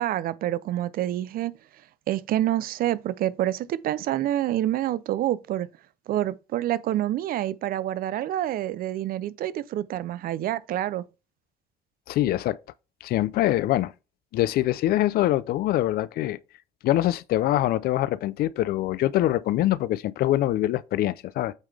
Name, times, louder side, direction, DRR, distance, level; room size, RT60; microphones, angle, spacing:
voice 1, 0.0-1.5 2.1-5.7 6.1-11.0, right 13 dB, 60° right, 0.4 m, -27 dB
voice 2, 12.1-12.6 13.0-13.9 14.3-16.4 16.8-21.5, left 14 dB, 65° left, 0.4 m, -24 dB
8.1 x 3.7 x 3.4 m
cardioid pair, 110°, 17 cm